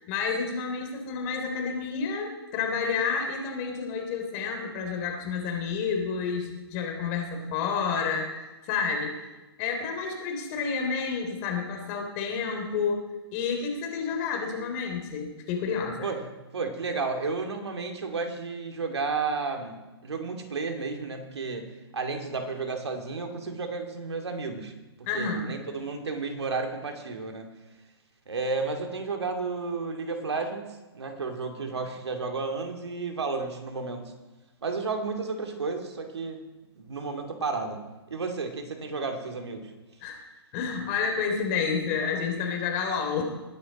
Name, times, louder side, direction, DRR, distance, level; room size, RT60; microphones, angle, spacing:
voice 1, 0.0-9.2 9.6-13.0 13.3-16.1 25.1-25.5 40.0-40.2 40.5-43.2, left 5 dB, 40° left, 2 dB, 3.3 m, -30 dB
voice 2, 16.5-24.7 25.1-27.5 28.3-30.6 30.9-34.1 34.6-36.4 36.8-37.8 38.1-39.7, right 4 dB, 85° right, 4 dB, 2.4 m, -32 dB
21.5 x 9.1 x 4.2 m, 1.1 s
hypercardioid pair, 135°, 14 cm